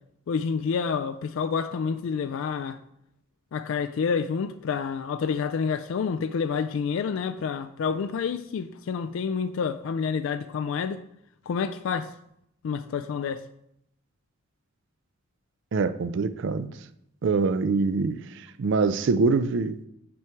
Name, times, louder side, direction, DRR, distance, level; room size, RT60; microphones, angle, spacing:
voice 1, 0.3-2.8 3.5-11.0 11.5-12.1 12.6-13.4, left 6 dB, 65° left, 0.3 m, -28 dB
voice 2, 15.7-16.7 17.2-18.2 18.6-19.9, right 4 dB, 60° right, 0.4 m, -24 dB
6.1 x 5.9 x 4.5 m
head